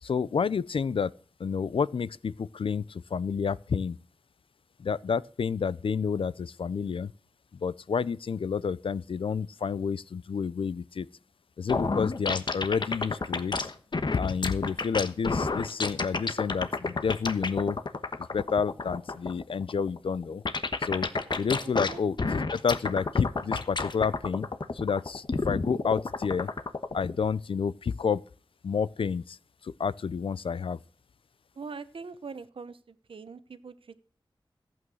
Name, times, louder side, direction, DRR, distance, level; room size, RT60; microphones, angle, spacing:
voice 1, 0.0-1.1 1.4-4.0 4.8-7.1 7.5-11.1 11.6-13.7 14.1-17.8 18.3-20.4 20.8-21.1 21.4-24.5 24.7-26.5 26.9-28.2 28.6-29.4 29.6-30.8, left 6 dB, 85° left, 0.5 m, -29 dB
sound 1, 11.7-27.2, left 3 dB, 60° left, 1.1 m, -30 dB
voice 2, 21.6-22.0 31.6-34.0, right 5 dB, 80° right, 1.0 m, -43 dB
14.5 x 8.6 x 6.3 m
wide cardioid pair, 90°, 9 cm